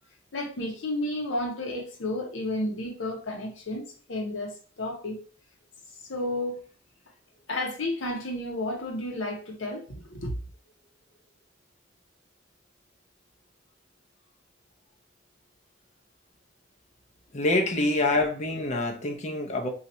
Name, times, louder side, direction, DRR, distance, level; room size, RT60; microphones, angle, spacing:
voice 1, 0.3-5.2 6.1-6.6 7.5-10.3, left 1 dB, 75° left, 0.8 m, -32 dB
voice 2, 17.3-19.7, left 2 dB, 35° left, 0.6 m, -26 dB
2.7 x 2.4 x 4.1 m
head